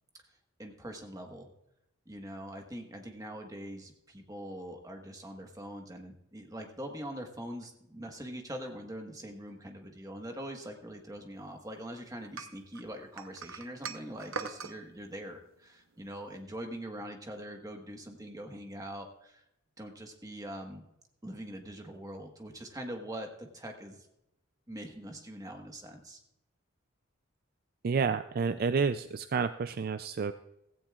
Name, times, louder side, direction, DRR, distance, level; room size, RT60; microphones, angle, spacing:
voice 1, 0.6-1.5 2.1-19.4 19.8-20.8 21.2-24.1 24.7-26.2, right 1 dB, 15° right, 3 dB, 1.3 m, -43 dB
sound 1, 12.4-14.8, right 5 dB, 70° right, 0.9 m, -40 dB
voice 2, 27.8-30.3, right 5 dB, 45° right, 11 dB, 0.3 m, -30 dB
16.0 x 15.0 x 2.4 m, 0.86 s
head